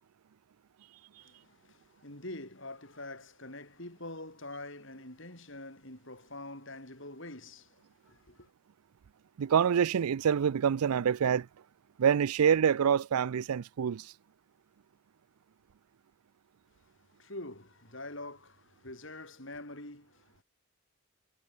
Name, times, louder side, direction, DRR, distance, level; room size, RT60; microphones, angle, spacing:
voice 1, 1.2-8.5 16.8-20.4, left 2 dB, 55° left, 6.4 m, -45 dB
voice 2, 9.4-11.5 12.0-14.0, right 7 dB, 85° right, 0.4 m, -26 dB
head